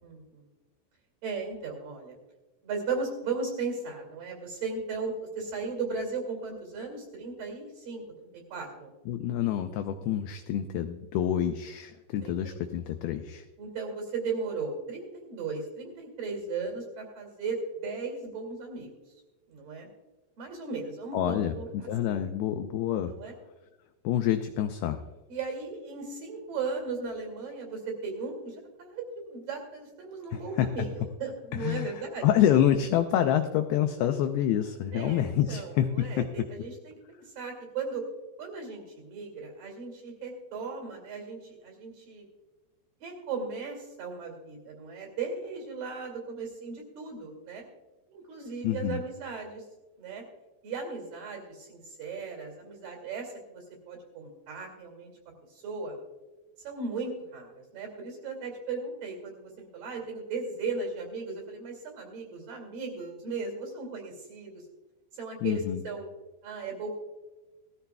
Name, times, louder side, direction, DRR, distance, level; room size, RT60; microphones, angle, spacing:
voice 1, 0.0-0.5 1.2-2.2 2.6-8.0 8.3-8.9 12.2-12.6 13.6-17.6 17.8-18.9 19.5-19.9 20.4-21.9 23.0-23.3 25.3-32.3 34.9-38.0 38.4-42.2 43.0-47.6 48.1-49.6 50.0-50.2 50.6-55.1 55.5-56.0 56.6-64.6 65.1-66.1 66.4-66.9, right 4 dB, 55° right, 1 dB, 3.8 m, -36 dB
voice 2, 9.1-13.4 21.1-23.1 24.0-25.0 30.3-30.9 31.5-31.9 32.2-36.5 48.6-49.0 65.4-65.8, left 10 dB, 85° left, 7 dB, 2.3 m, -27 dB
18.5 x 14.0 x 2.3 m, 1.1 s
omnidirectional pair, 5.2 m